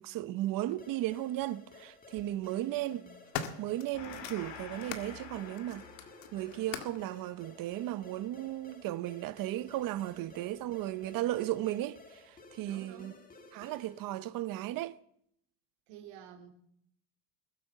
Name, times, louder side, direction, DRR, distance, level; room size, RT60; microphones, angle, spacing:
voice 1, 0.0-3.0 3.6-5.8 6.3-13.1 13.5-15.0, right 14 dB, 50° right, 0.8 m, -35 dB
sound 1, 0.7-0.8 1.9-2.3 2.8-5.1 5.6-7.1 7.9-8.0, left 8 dB, 85° left, 2.0 m, -42 dB
sound 2, 0.8-14.1, left 3 dB, 20° left, 1.8 m, -55 dB
voice 2, 2.5-3.2 9.5-9.7 10.2-10.4 12.6-13.2 15.9-16.5, right 9 dB, 85° right, 2.7 m, -52 dB
Gong, 3.9-10.9, left 6 dB, 70° left, 3.3 m, -51 dB
21.5 x 8.6 x 6.7 m
cardioid pair, 160°, 43 cm